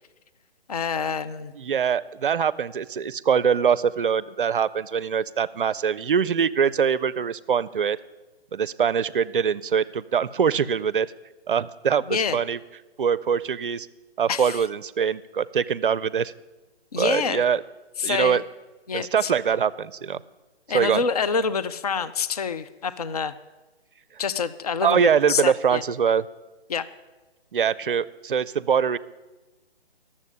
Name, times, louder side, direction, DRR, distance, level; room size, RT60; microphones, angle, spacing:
voice 1, 0.7-1.5 12.1-12.4 14.3-14.6 16.9-17.4 18.0-18.4 18.9-19.3 20.7-23.3 24.2-25.8 26.7-26.9, left 6 dB, 40° left, 14 dB, 0.4 m, -27 dB
voice 2, 1.6-8.0 8.5-11.1 11.5-12.6 13.0-13.9 14.2-16.3 17.0-17.6 18.0-18.4 18.9-20.2 20.7-21.0 24.8-26.3 27.5-29.0, right 7 dB, 55° right, 18 dB, 0.5 m, -23 dB
11.5 x 7.4 x 8.4 m, 1.2 s
figure-of-eight pair, 140°, 32 cm